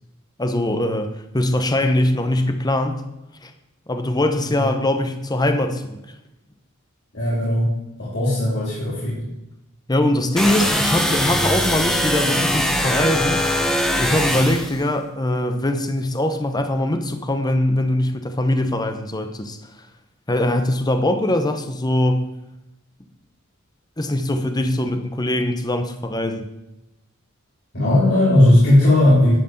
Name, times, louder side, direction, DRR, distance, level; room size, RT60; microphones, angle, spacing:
voice 1, 0.4-3.0 3.4-3.5 3.9-6.0 9.9-13.4 14.0-19.8 20.3-22.3 24.0-26.5, left 1 dB, 20° left, 7 dB, 1.0 m, -22 dB
voice 2, 7.1-7.7 8.0-9.2 27.7-29.3, left 1 dB, 55° left, -8 dB, 3.7 m, -16 dB
sound 1, 10.4-14.8, equal, ahead, 1.3 m, -21 dB
10.5 x 6.5 x 7.9 m, 0.91 s
head